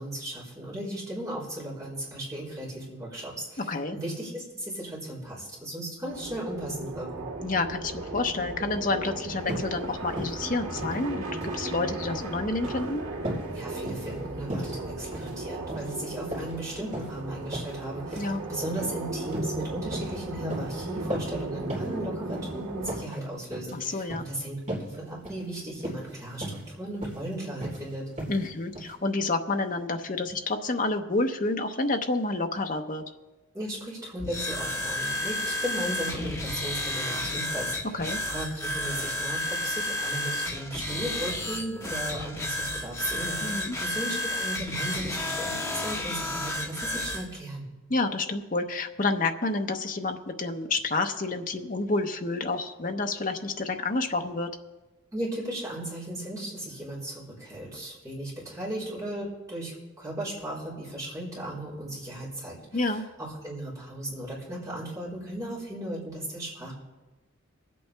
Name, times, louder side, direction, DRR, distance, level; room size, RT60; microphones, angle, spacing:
voice 1, 0.0-7.2 13.5-24.6 24.8-28.0 33.5-47.7 55.1-66.7, right 1 dB, 15° right, -8 dB, 4.1 m, -36 dB
sound 1, 6.1-23.0, right 2 dB, 80° right, 2.2 m, -36 dB
voice 2, 7.4-13.0 18.2-18.4 23.7-24.2 28.3-33.0 37.9-38.2 43.4-43.8 47.9-54.5 62.7-63.0, left 3 dB, 40° left, 5 dB, 0.8 m, -29 dB
sound 2, 9.4-9.7 10.1-10.4 10.7-11.6 11.9-12.2 12.6-12.8 13.2-13.5 13.8-14.2 14.5-14.7 15.1-15.4 15.7-16.0 16.3-17.2 17.5-17.7 18.1-18.3 18.7-18.9 19.3-19.6 19.9-20.2 20.5-20.7 21.1-21.4 21.7-21.9 22.3-22.5 22.8-23.2 23.5-23.7 24.1-24.3 24.7-24.9 25.2-25.4 25.8-26.1 26.4-26.7 27.0-27.3 27.6-27.8 28.2-28.5 28.8-28.9, right 1 dB, 35° right, 3.6 m, -36 dB
sound 3, 34.2-47.2, left 1 dB, 15° left, 1.4 m, -31 dB
23.0 x 8.5 x 3.4 m, 1.1 s
head